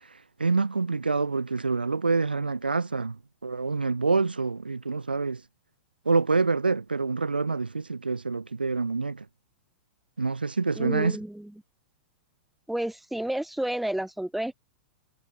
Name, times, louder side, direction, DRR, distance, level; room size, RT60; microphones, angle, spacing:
voice 1, 0.4-5.4 6.1-9.3 10.2-11.2, right 4 dB, 85° right, 0.7 m, -26 dB
voice 2, 10.8-11.5 12.7-14.6, right 1 dB, ahead, 1.0 m, -31 dB
figure-of-eight pair, 100°, 5 cm